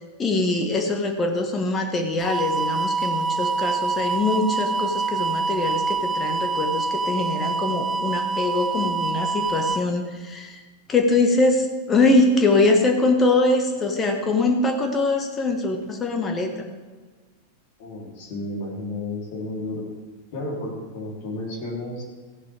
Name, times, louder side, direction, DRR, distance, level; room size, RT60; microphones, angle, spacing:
voice 1, 0.2-10.6 10.9-16.7, left 2 dB, 20° left, 5 dB, 1.7 m, -23 dB
sound 1, 2.2-9.8, right 4 dB, 15° right, 0.4 m, -25 dB
voice 2, 17.8-19.9 20.3-22.0, left 2 dB, 50° left, -3 dB, 3.7 m, -32 dB
16.0 x 10.0 x 3.6 m, 1.4 s
figure-of-eight pair, 90°, 0 cm